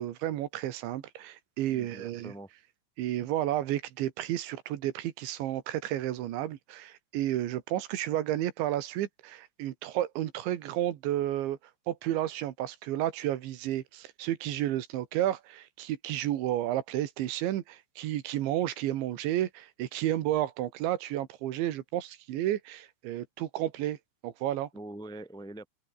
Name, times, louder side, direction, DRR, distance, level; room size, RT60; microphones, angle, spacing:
voice 1, 0.0-2.3 3.0-11.6 11.9-24.0 24.2-24.7, right 13 dB, 75° right, 3.8 m, -31 dB
voice 2, 1.7-2.5 24.7-25.7, right 1 dB, ahead, 1.2 m, -43 dB
open air
omnidirectional pair, 5.4 m